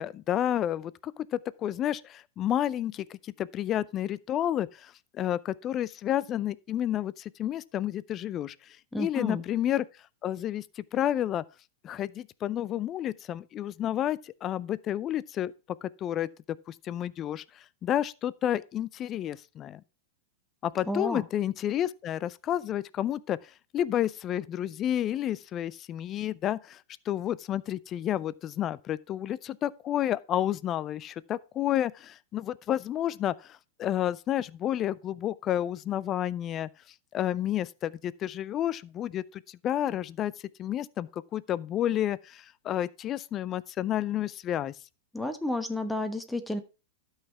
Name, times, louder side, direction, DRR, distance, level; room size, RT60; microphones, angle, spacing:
voice 1, 0.0-8.5 9.0-9.8 10.2-11.4 11.8-15.5 15.8-16.3 16.7-19.8 20.6-23.4 23.7-26.8 27.1-36.7 37.1-40.3 40.6-44.7, left 11 dB, 35° left, 0.5 m, -30 dB
voice 2, 8.9-9.4 20.9-21.2 45.1-46.6, left 1 dB, 5° left, 1.1 m, -31 dB
12.5 x 5.7 x 4.3 m
hypercardioid pair, 105°, 0 cm